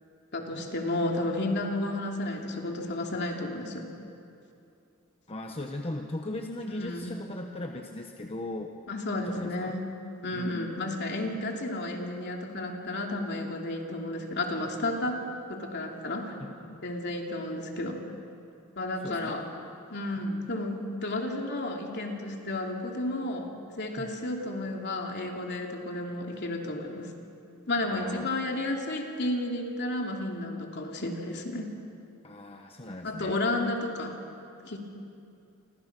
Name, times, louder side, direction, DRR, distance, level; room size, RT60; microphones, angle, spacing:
voice 1, 0.3-3.8 6.7-7.1 8.9-9.9 10.2-15.2 15.5-16.4 16.8-18.0 18.8-19.4 19.9-27.1 27.7-31.7 33.0-34.2 34.6-34.8, left 2 dB, 55° left, 1 dB, 3.0 m, -32 dB
voice 2, 5.3-8.8 9.2-9.8 10.3-10.8 16.4-16.8 19.0-19.4 20.2-20.5 24.0-24.1 27.8-28.3 32.2-33.3, left 1 dB, 30° left, 3 dB, 1.2 m, -38 dB
29.5 x 25.5 x 6.1 m, 2.6 s
head